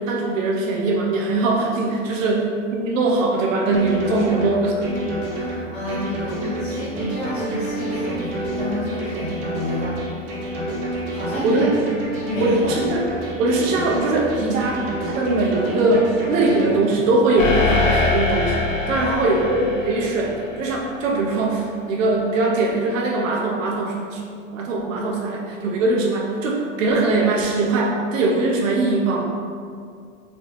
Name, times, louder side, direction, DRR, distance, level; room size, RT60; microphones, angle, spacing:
voice 1, 0.0-4.8 11.4-11.7 12.4-13.0 13.4-24.2 24.5-29.3, right 2 dB, 75° right, -1 dB, 0.9 m, -21 dB
sound 1, 3.7-16.7, right 1 dB, 35° right, 0.9 m, -28 dB
voice 2, 5.3-10.0 10.4-10.5 11.1-11.7 12.3-12.8 18.9-19.2, left 1 dB, 15° left, -10 dB, 0.8 m, -30 dB
sound 2, 17.4-21.0, left 3 dB, 70° left, 1.1 m, -23 dB
4.1 x 2.2 x 3.4 m, 2.2 s
hypercardioid pair, 125°, 40 cm